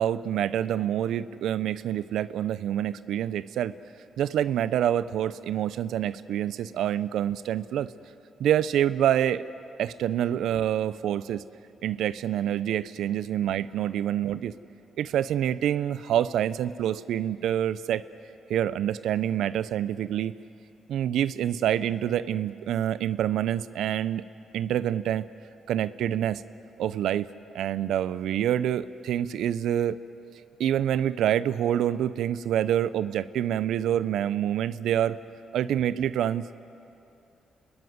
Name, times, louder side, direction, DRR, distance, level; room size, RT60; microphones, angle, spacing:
voice 1, 0.0-3.7 4.2-7.9 8.4-9.4 9.8-11.4 11.8-14.5 15.0-18.0 18.5-20.3 20.9-24.2 24.5-25.3 25.7-26.4 26.8-27.3 27.5-30.0 30.6-35.2 35.5-36.5, right 10 dB, 80° right, 15 dB, 0.5 m, -26 dB
29.0 x 14.0 x 9.5 m, 2.7 s
cardioid pair, 80°, 0 cm